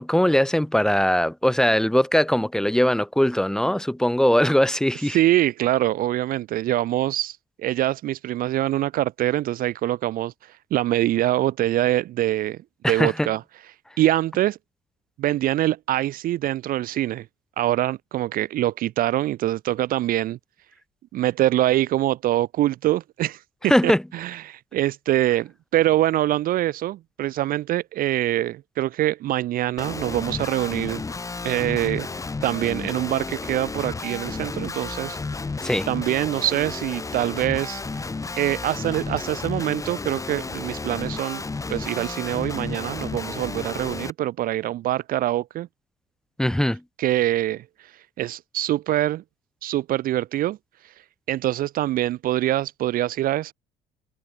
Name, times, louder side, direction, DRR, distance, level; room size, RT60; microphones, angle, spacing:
voice 1, 0.0-5.2 12.8-13.3 23.7-24.0 35.6-35.9 46.4-46.8, equal, 5° left, 0.8 m, -20 dB
voice 2, 5.1-12.6 12.9-13.4 14.0-14.6 15.2-17.3 17.6-20.4 21.1-23.4 23.8-31.0 31.4-32.1 32.4-35.2 35.9-38.1 38.4-41.4 41.7-45.7 47.0-47.6 48.2-49.2 49.6-50.6 51.3-53.5, right 14 dB, 55° right, 0.4 m, -24 dB
Guitar, 29.8-44.1, left 3 dB, 20° left, 1.7 m, -32 dB
cardioid pair, 110°, 17 cm